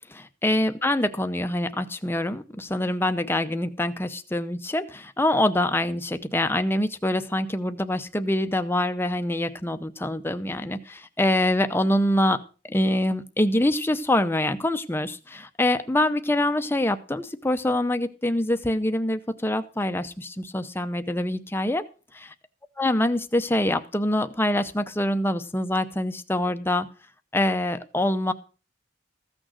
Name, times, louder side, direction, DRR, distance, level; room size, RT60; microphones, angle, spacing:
voice 1, 0.1-12.4 12.7-21.8 22.8-26.9 27.3-28.3, left 1 dB, 10° left, 9 dB, 0.6 m, -25 dB
14.5 x 6.3 x 6.3 m, 0.36 s
head